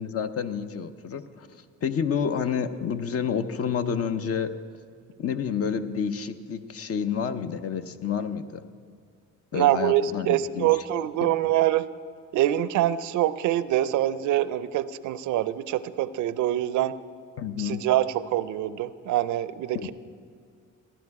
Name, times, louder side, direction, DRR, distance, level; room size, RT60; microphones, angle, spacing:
voice 1, 0.0-4.5 5.2-8.6 9.5-10.7 11.2-11.3 17.4-17.9 19.7-19.9, left 7 dB, 50° left, 10 dB, 0.7 m, -29 dB
voice 2, 9.5-11.9 12.3-16.9 17.6-19.9, right 13 dB, 80° right, 16 dB, 0.5 m, -25 dB
14.5 x 11.5 x 4.8 m, 2.1 s
cardioid pair, 90°, 30 cm